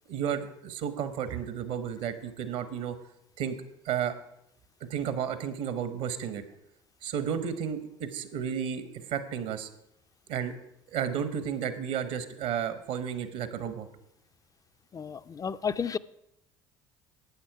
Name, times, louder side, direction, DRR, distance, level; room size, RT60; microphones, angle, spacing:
voice 1, 0.1-3.0 3.4-3.6 3.8-4.1 4.9-6.4 7.0-9.7 10.3-10.5 10.9-13.9, right 8 dB, 65° right, 1.2 m, -32 dB
voice 2, 14.9-16.0, left 6 dB, 25° left, 0.5 m, -32 dB
11.5 x 8.9 x 4.8 m
hypercardioid pair, 60°, 14 cm